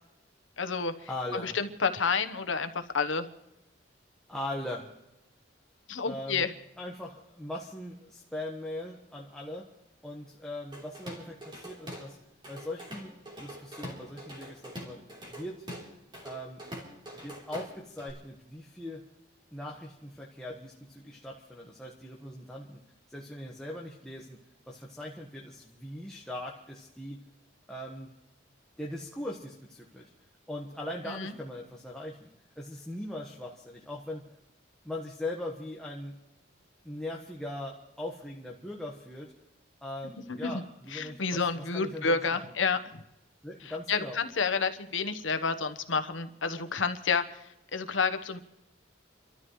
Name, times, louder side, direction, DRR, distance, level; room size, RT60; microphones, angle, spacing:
voice 1, 0.6-0.9 1.3-3.3 5.9-6.5 31.1-31.3 40.4-40.6 40.9-42.8 43.6-47.2 47.7-48.4, left 5 dB, 85° left, 9 dB, 1.0 m, -29 dB
voice 2, 1.1-1.6 4.3-4.9 6.0-6.5 6.8-9.7 10.0-12.2 12.5-15.0 15.3-15.7 16.2-16.6 17.1-19.0 19.5-22.8 23.1-24.4 24.7-27.2 27.7-28.2 28.8-30.1 30.5-32.3 32.6-34.3 34.8-36.1 36.8-39.3 39.8-42.5 43.4-44.2, left 1 dB, 5° left, -3 dB, 1.3 m, -40 dB
Drum kit / Drum, 10.7-12.1 12.4-18.1, equal, 25° right, 3.5 m, -44 dB
30.0 x 13.0 x 3.1 m, 0.92 s
head